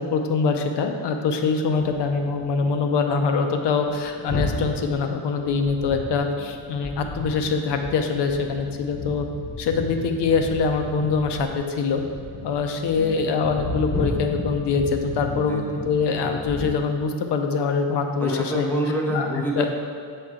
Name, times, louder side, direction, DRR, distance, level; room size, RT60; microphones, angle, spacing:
voice 1, 0.0-9.3 9.6-12.0 12.4-18.7 19.1-19.3 19.6-19.7, left 4 dB, 70° left, 5 dB, 0.7 m, -24 dB
sound 1, 1.7-2.8 3.1-3.3 3.6-16.8, left 2 dB, 30° left, 0.9 m, -33 dB
voice 2, 13.0-13.4 15.5-16.0 18.2-19.7, right 1 dB, 5° left, -3 dB, 0.6 m, -27 dB
7.5 x 4.4 x 3.7 m, 2.2 s
cardioid pair, 135°, 43 cm